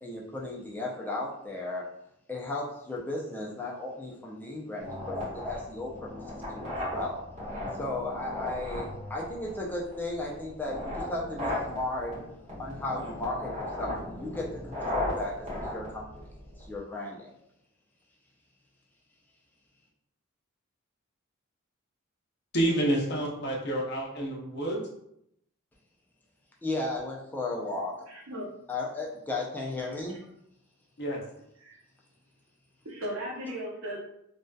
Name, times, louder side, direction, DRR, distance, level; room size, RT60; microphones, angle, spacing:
voice 1, 0.0-1.8 2.3-5.9 6.5-7.2 7.8-12.1 12.6-15.3 15.7-16.1 16.7-17.3 26.6-28.1 28.7-30.2, left 2 dB, 10° left, -3 dB, 0.4 m, -35 dB
sound 1, 4.8-16.8, left 1 dB, 30° right, 1.0 m, -36 dB
voice 2, 22.5-24.9 31.0-31.2, right 1 dB, 50° left, -1 dB, 0.6 m, -28 dB
voice 3, 28.1-28.5 30.1-30.2 31.6-31.8 32.8-34.0, equal, 85° right, -2 dB, 0.7 m, -37 dB
2.6 x 2.2 x 2.2 m, 0.76 s
head